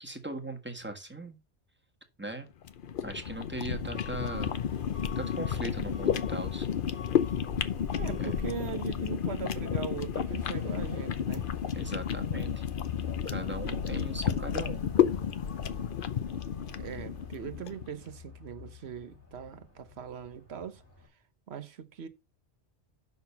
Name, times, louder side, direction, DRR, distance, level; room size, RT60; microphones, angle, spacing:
voice 1, 0.0-1.4 2.2-2.5 3.0-4.6 5.1-6.7 8.2-8.3 11.7-12.6 13.3-14.9, right 2 dB, 10° right, 1.4 m, -39 dB
sound 1, 2.6-17.9, left 8 dB, 55° left, 0.8 m, -32 dB
Truck / Alarm, 3.8-21.1, left 8 dB, 85° left, 3.0 m, -45 dB
voice 2, 7.9-11.5 13.6-14.0 16.6-20.8 21.5-22.1, right 8 dB, 70° right, 1.2 m, -40 dB
7.0 x 5.9 x 5.7 m
omnidirectional pair, 1.1 m